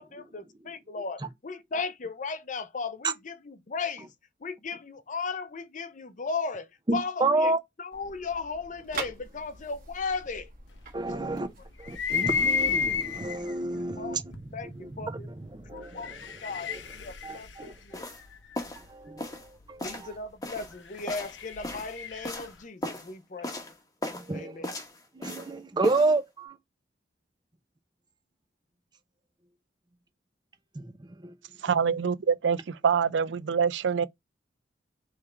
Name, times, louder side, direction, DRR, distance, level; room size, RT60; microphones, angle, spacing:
voice 1, 0.0-4.1 4.4-7.5 7.8-10.5 11.2-11.4 14.0-15.3 15.7-16.2 16.4-18.1 19.8-23.6 24.3-24.7, left 4 dB, 45° left, 0.7 m, -36 dB
voice 2, 6.9-7.6 10.9-11.5 11.8-14.3 14.7-16.2 16.7-16.8 17.2-17.7 18.8-19.4 19.7-20.1 24.1-24.7 25.1-26.6 30.8-31.3 31.7-31.8, right 2 dB, 25° right, 0.6 m, -30 dB
sound 1, 7.9-13.0, right 4 dB, 50° right, 1.5 m, -44 dB
sound 2, 11.8-13.5 14.3-14.4 15.8-18.6 20.7-22.5, left 6 dB, 85° left, 0.8 m, -31 dB
sound 3, 17.9-18.2 18.6-18.9 19.2-19.5 19.8-20.1 20.4-21.9 22.2-22.5 22.8-23.1 23.4-23.7 24.0-24.3 24.6-25.5 25.8-26.1, left 1 dB, 20° left, 1.1 m, -36 dB
voice 3, 31.6-34.1, right 6 dB, 75° right, 0.4 m, -25 dB
3.6 x 3.2 x 4.3 m
head